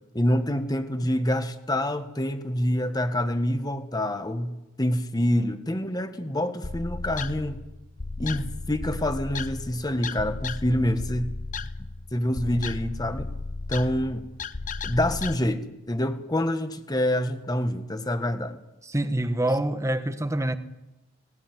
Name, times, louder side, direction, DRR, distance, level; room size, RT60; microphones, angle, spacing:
voice 1, 0.1-7.6 8.2-11.3 12.1-13.3 13.7-14.3 14.8-18.6, left 1 dB, 20° left, 1.5 m, -26 dB
sound 1, 6.6-15.4, left 3 dB, 40° left, 0.8 m, -35 dB
voice 2, 18.8-20.6, right 1 dB, 15° right, 1.2 m, -26 dB
19.0 x 17.5 x 9.6 m
head